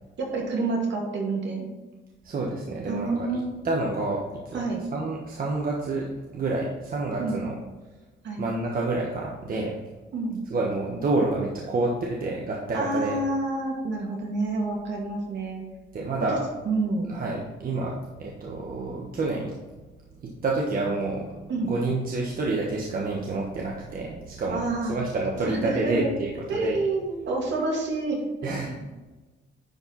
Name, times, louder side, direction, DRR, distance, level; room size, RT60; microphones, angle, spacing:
voice 1, 0.2-1.7 2.9-3.5 4.5-4.8 7.2-7.4 8.2-8.4 10.1-10.4 12.7-15.6 16.3-16.4 16.7-17.1 21.5-21.7 24.5-25.0 25.4-26.1 26.5-28.8, right 2 dB, 65° right, -1 dB, 2.4 m, -28 dB
voice 2, 2.2-4.6 4.9-6.1 6.3-7.5 8.4-9.8 10.5-13.2 15.9-16.4 17.1-19.5 20.2-26.8 28.4-29.0, right 2 dB, 45° right, -2 dB, 1.4 m, -29 dB
10.5 x 4.5 x 4.1 m, 1.2 s
cardioid pair, 90°, 20 cm